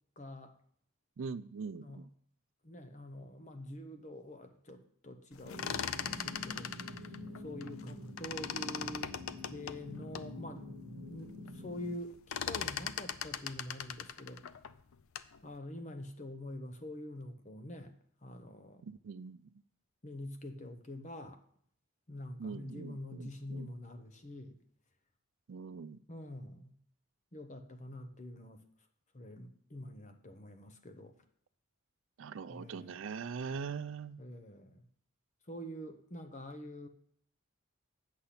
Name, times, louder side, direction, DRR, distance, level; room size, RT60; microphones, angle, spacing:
voice 1, 0.2-0.6 1.8-2.1 2.6-6.7 7.3-9.2 9.5-10.8 11.1-14.4 15.4-18.8 20.0-21.4 22.1-24.6 26.1-26.7 27.3-28.6 29.1-31.2 32.5-33.0 34.2-34.8 35.5-36.9, left 1 dB, 35° left, 7 dB, 0.8 m, -46 dB
voice 2, 1.2-2.0 18.8-19.4 22.4-23.7 25.5-26.0 32.2-34.2, right 5 dB, 65° right, 15 dB, 0.4 m, -42 dB
sound 1, 5.4-7.9 8.2-10.3 10.8-10.9 11.2-11.6 11.8-15.4, left 8 dB, 75° left, 0.5 m, -39 dB
sound 2, 5.4-11.9, left 1 dB, 85° right, 1.0 m, -47 dB
8.4 x 6.6 x 5.7 m, 0.63 s
head